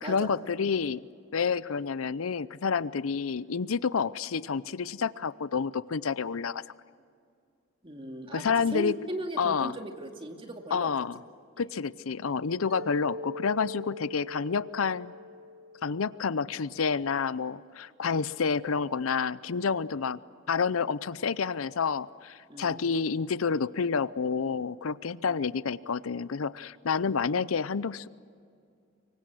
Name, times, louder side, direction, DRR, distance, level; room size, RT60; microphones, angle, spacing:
voice 1, 0.0-1.0 1.3-6.6 8.3-8.9 9.4-9.7 10.7-11.2 11.6-15.1 15.8-20.2 20.5-28.1, left 5 dB, 80° left, 18 dB, 0.6 m, -29 dB
voice 2, 7.8-10.9 22.5-22.8 25.3-25.5, right 1 dB, 25° right, 4 dB, 2.3 m, -38 dB
Mallet percussion, 12.7-16.8, left 1 dB, 85° right, 2.1 m, -43 dB
25.0 x 23.5 x 7.8 m, 2.4 s
head